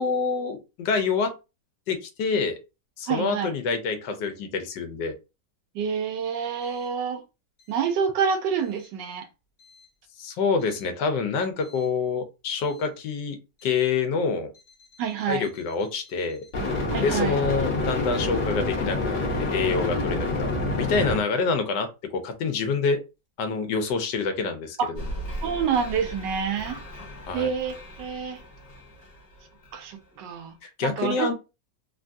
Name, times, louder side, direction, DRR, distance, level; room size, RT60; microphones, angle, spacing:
voice 1, 0.0-1.3 1.9-2.6 3.0-5.1 10.2-13.4 13.6-14.5 15.3-16.4 17.0-23.0 23.4-24.8 27.3-27.5 30.8-31.3, left 4 dB, 85° left, 1.3 m, -27 dB
voice 2, 3.1-3.5 5.7-7.2 7.7-9.3 15.0-15.5 16.9-17.4 24.8-24.9 25.4-26.8 27.3-28.4 29.7-31.3, right 7 dB, 90° right, 1.3 m, -27 dB
sound 1, 11.7-11.8 16.5-21.2, left 2 dB, 50° left, 1.3 m, -27 dB
sound 2, 25.0-30.4, equal, 25° left, 0.9 m, -39 dB
3.4 x 2.3 x 2.6 m
omnidirectional pair, 1.9 m